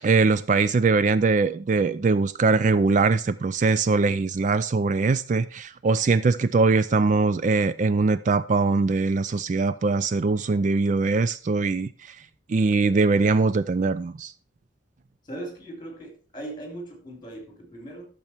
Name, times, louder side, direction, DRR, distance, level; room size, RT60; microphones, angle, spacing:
voice 1, 0.0-12.2 12.5-14.3, right 4 dB, 40° right, 0.3 m, -22 dB
voice 2, 15.3-18.1, right 1 dB, 25° left, 3.3 m, -39 dB
12.0 x 6.9 x 4.4 m
head